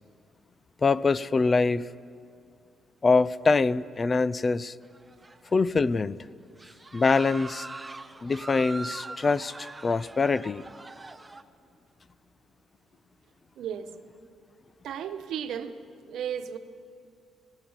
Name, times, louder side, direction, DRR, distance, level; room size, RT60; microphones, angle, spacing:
voice 1, 0.8-1.8 3.0-4.7 5.5-6.2 6.9-7.7 8.2-10.6, left 4 dB, 30° left, 18 dB, 0.5 m, -24 dB
sound 1, 4.8-5.7 6.0-6.1 6.6-11.4, right 3 dB, 15° right, 1.0 m, -42 dB
voice 2, 13.6-13.9 14.8-15.7 16.1-16.6, right 8 dB, 75° right, 9 dB, 1.2 m, -34 dB
27.5 x 18.5 x 7.3 m, 2.3 s
cardioid pair, 110°, 0 cm